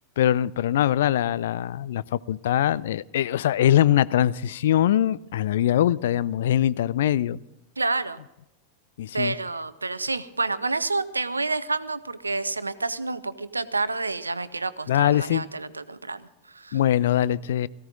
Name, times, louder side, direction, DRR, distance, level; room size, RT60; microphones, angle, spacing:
voice 1, 0.2-7.4 9.0-9.3 14.9-15.4 16.7-17.7, left 11 dB, 60° left, 0.4 m, -22 dB
voice 2, 7.8-8.2 9.1-16.8, right 3 dB, 80° right, 0.7 m, -29 dB
18.0 x 15.5 x 3.9 m
figure-of-eight pair, 90°, 0 cm